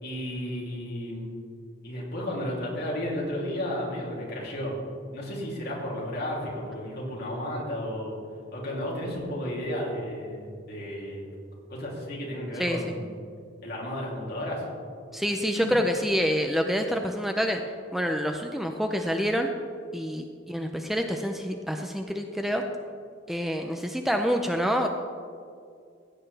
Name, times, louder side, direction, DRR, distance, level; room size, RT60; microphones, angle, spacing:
voice 1, 0.0-1.3 1.8-4.8 5.1-8.2 8.5-11.2 11.7-13.1 13.6-14.7 15.6-15.7, equal, 55° left, -4 dB, 2.9 m, -33 dB
voice 2, 12.6-13.0 15.1-17.6 17.9-19.5 19.9-22.6 23.3-24.9, equal, ahead, 4 dB, 0.5 m, -27 dB
16.0 x 8.8 x 3.4 m, 2.3 s
head